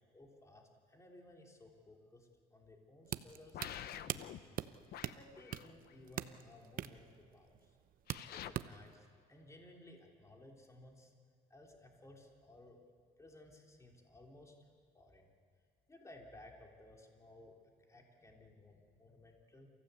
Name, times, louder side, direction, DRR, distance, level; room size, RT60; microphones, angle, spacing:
voice 1, 0.1-7.8 8.3-11.1 11.5-12.8 13.2-14.6 14.9-15.3 15.9-19.7, left 1 dB, 15° left, 1 dB, 3.3 m, -59 dB
sound 1, 3.1-8.9, right 11 dB, 55° right, 0.8 m, -44 dB
sound 2, 3.5-4.4 4.9-5.9 8.1-8.5, left 11 dB, 65° left, 0.9 m, -48 dB
29.0 x 15.5 x 8.3 m, 2.1 s
cardioid pair, 110°, 17 cm